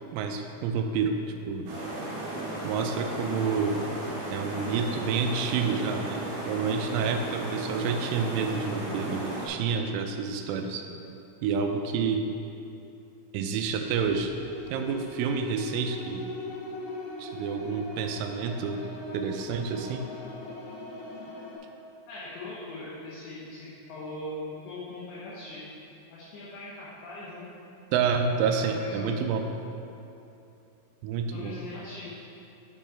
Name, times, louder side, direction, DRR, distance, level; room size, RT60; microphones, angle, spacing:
voice 1, 0.1-1.1 1.5-1.7 2.6-3.8 4.3-10.9 11.4-12.3 13.3-14.3 14.7-16.3 17.2-18.8 19.1-20.0 27.9-29.4 31.0-31.6, right 5 dB, 85° right, 5 dB, 3.0 m, -29 dB
sound 1, 1.7-9.5, right 2 dB, 60° right, 3.0 m, -35 dB
sound 2, 13.9-21.6, left 1 dB, 90° left, 3.9 m, -40 dB
voice 2, 22.1-24.4 24.6-25.6 26.1-27.5 28.3-29.3 31.3-32.1, left 2 dB, 75° left, -8 dB, 3.0 m, -40 dB
8.3 x 5.5 x 4.4 m, 2.8 s
omnidirectional pair, 5.7 m